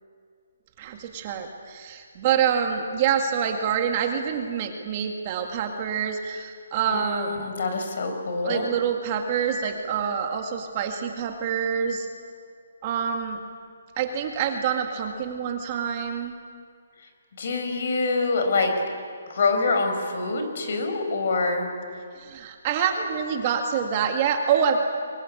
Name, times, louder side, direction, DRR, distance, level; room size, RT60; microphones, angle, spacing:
voice 1, 0.8-7.3 8.4-12.1 12.8-13.4 14.0-16.4 22.2-24.9, right 7 dB, 25° right, 4 dB, 2.0 m, -26 dB
voice 2, 6.9-8.7 17.4-18.7 19.3-21.7, left 3 dB, 50° left, 5 dB, 5.5 m, -25 dB
23.5 x 23.0 x 9.9 m, 2.1 s
hypercardioid pair, 170°, 0 cm